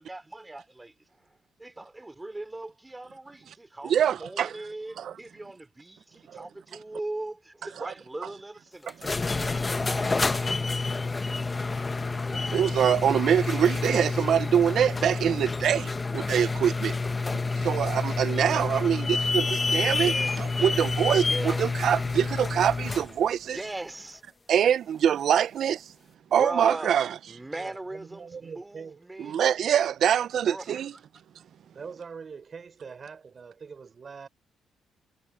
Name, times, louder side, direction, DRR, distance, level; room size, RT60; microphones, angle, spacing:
voice 1, 0.0-10.5 18.3-18.6 19.9-20.4 21.2-21.7 22.9-24.2 26.3-26.9 27.3-29.3 30.4-30.9, right 2 dB, 15° right, 3.4 m, -40 dB
voice 2, 3.9-4.5 5.0-5.1 12.5-17.0 17.6-23.6 24.5-25.8 26.3-27.1 29.2-30.9, right 9 dB, 65° right, 0.6 m, -24 dB
sound 1, 8.9-23.1, left 3 dB, 25° left, 1.2 m, -28 dB
voice 3, 12.0-12.5 27.5-29.0 31.6-34.3, right 5 dB, 40° right, 4.6 m, -43 dB
cardioid pair, 90°, 0 cm